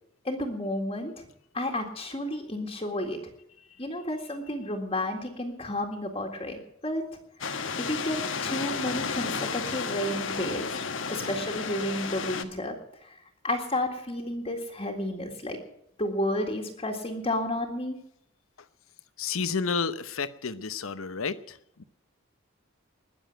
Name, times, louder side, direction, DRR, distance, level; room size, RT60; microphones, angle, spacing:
voice 1, 0.2-1.2 1.5-3.2 3.8-7.0 7.4-7.6 7.9-10.7 11.1-12.7 13.0-13.2 13.4-15.6 16.0-18.0, left 1 dB, 30° left, 1 dB, 1.9 m, -31 dB
sound 1, 7.4-12.4, left 5 dB, 65° left, 1.2 m, -32 dB
voice 2, 19.2-21.8, left 5 dB, 80° left, 13 dB, 0.9 m, -31 dB
20.5 x 7.3 x 9.1 m, 0.75 s
head